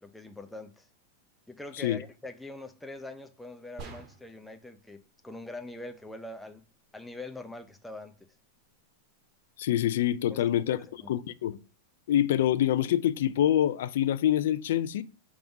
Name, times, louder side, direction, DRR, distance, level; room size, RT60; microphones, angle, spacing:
voice 1, 0.0-0.9 1.5-6.6 6.9-8.2 10.3-11.1, left 2 dB, 5° left, 0.5 m, -43 dB
sound 1, 3.8-4.5, right 4 dB, 30° right, 1.1 m, -45 dB
voice 2, 9.6-10.8 11.1-11.6 12.1-15.0, left 11 dB, 65° left, 0.4 m, -26 dB
5.8 x 3.6 x 5.4 m
supercardioid pair, 165°, 0 cm